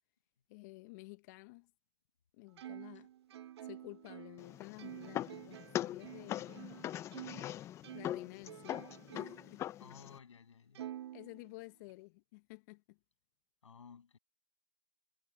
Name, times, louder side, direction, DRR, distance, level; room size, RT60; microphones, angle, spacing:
voice 1, 0.5-1.7 2.3-3.1 3.4-6.9 7.4-9.9 11.1-13.0, left 23 dB, 35° left, 1.1 m, -53 dB
Plucked string instrument, 2.6-7.5 7.8-9.6 10.0-10.1 10.8-11.9, right 12 dB, 60° right, 1.3 m, -50 dB
sound 1, 4.4-10.2, left 12 dB, 20° left, 0.7 m, -42 dB
voice 2, 9.8-10.9 13.6-14.2, left 6 dB, 85° left, 7.4 m, -56 dB
hypercardioid pair, 145°, 15 cm